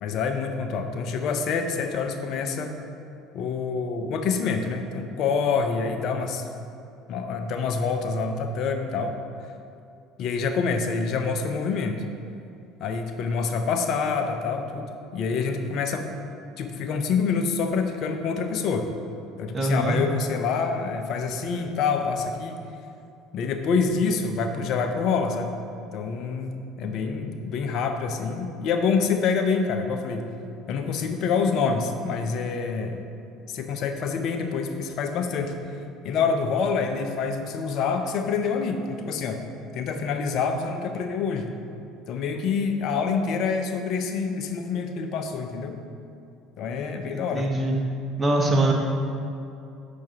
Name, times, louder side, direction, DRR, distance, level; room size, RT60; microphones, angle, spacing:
voice 1, 0.0-2.7 3.3-6.4 7.1-9.2 10.2-12.0 12.8-16.2 16.6-18.9 19.4-22.6 23.3-25.6 25.9-30.3 30.7-33.0 33.5-35.6 36.0-39.4 39.7-41.5 42.1-45.8 46.6-47.5, left 5 dB, 60° left, 6 dB, 0.5 m, -26 dB
voice 2, 19.5-20.0 47.1-47.8 48.2-48.7, right 2 dB, 20° right, -1 dB, 1.0 m, -23 dB
6.2 x 5.8 x 2.8 m, 2.6 s
hypercardioid pair, 70°, 0 cm